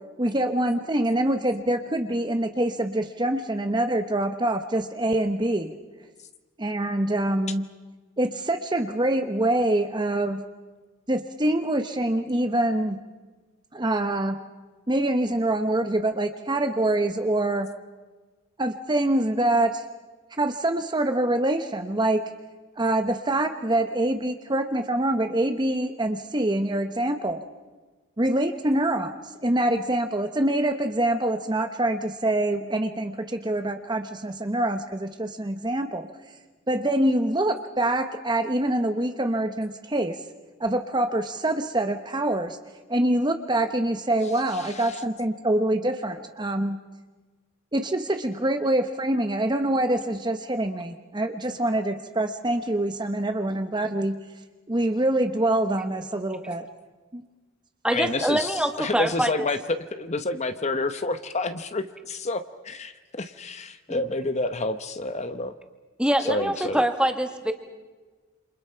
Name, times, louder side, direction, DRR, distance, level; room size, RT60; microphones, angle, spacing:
voice 1, 0.2-5.7 6.6-7.7 8.2-10.4 11.1-13.0 13.7-14.4 14.9-17.7 18.6-19.8 20.3-22.2 22.8-27.4 28.2-36.1 36.7-40.2 40.6-42.6 42.9-46.8 47.7-54.2 54.7-56.6 57.1-57.2, right 1 dB, 20° right, 7 dB, 1.0 m, -25 dB
voice 2, 44.6-45.0 57.9-65.6 66.2-66.8, left 2 dB, 35° left, 10 dB, 0.9 m, -29 dB
voice 3, 57.8-59.5 63.9-64.0 66.0-67.5, right 1 dB, 5° right, 5 dB, 2.0 m, -24 dB
28.5 x 27.0 x 5.7 m, 1.3 s
head